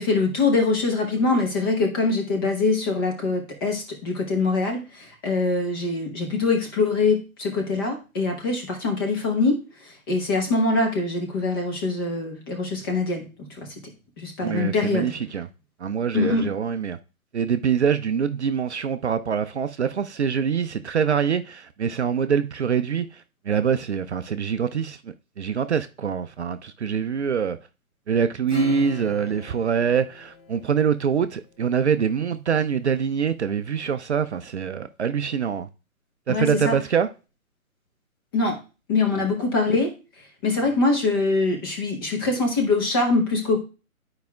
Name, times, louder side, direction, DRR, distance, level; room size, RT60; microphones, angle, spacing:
voice 1, 0.0-13.7 14.2-15.1 16.1-16.5 36.3-36.8 38.3-38.6 38.9-39.9 40.4-43.6, left 3 dB, 15° left, 0.8 m, -23 dB
voice 2, 14.4-15.5 15.8-17.0 17.3-27.6 28.1-35.7 36.3-37.1, right 7 dB, 55° right, 0.5 m, -24 dB
Acoustic guitar / Strum, 28.5-31.4, left 3 dB, 45° left, 1.9 m, -37 dB
10.0 x 4.8 x 2.3 m
figure-of-eight pair, 140°, 43 cm